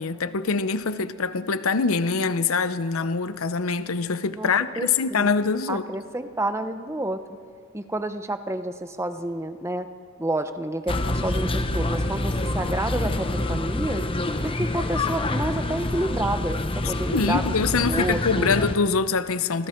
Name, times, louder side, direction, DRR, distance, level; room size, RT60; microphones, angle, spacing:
voice 1, 0.0-5.9 17.1-19.7, left 4 dB, 80° left, 0.7 m, -24 dB
voice 2, 4.8-5.3 5.7-7.2 7.7-9.9 10.2-14.0 14.4-17.4 17.8-18.5, right 1 dB, 15° right, 0.8 m, -29 dB
sound 1, 10.9-18.7, left 2 dB, 25° left, 0.9 m, -26 dB
30.0 x 22.5 x 4.5 m
head